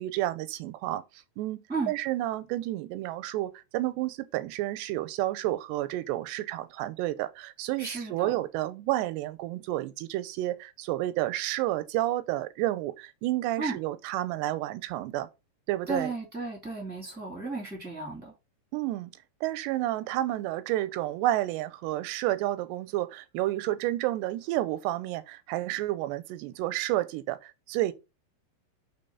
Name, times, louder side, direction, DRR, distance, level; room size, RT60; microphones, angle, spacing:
voice 1, 0.0-1.6 1.9-15.3 15.7-16.1 18.7-19.1 19.4-27.9, right 15 dB, 85° right, 2.7 m, -30 dB
voice 2, 7.8-8.4 13.6-13.8 15.9-18.3, right 3 dB, 5° right, 1.0 m, -34 dB
5.9 x 3.7 x 5.5 m
omnidirectional pair, 4.8 m